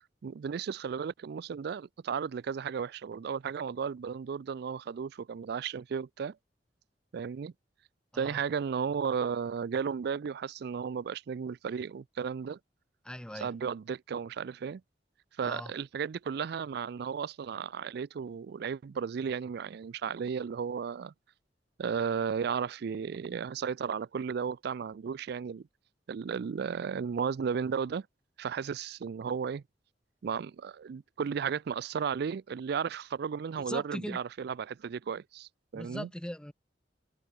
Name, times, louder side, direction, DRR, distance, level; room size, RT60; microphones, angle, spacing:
voice 1, 0.0-6.4 7.1-7.5 8.1-12.6 13.3-14.8 15.4-21.1 21.8-25.6 26.1-28.1 28.4-29.6 30.2-36.1, right 6 dB, 65° right, 0.4 m, -34 dB
voice 2, 13.0-13.5 15.4-15.7 33.7-34.2 35.7-36.5, equal, 5° left, 0.8 m, -40 dB
head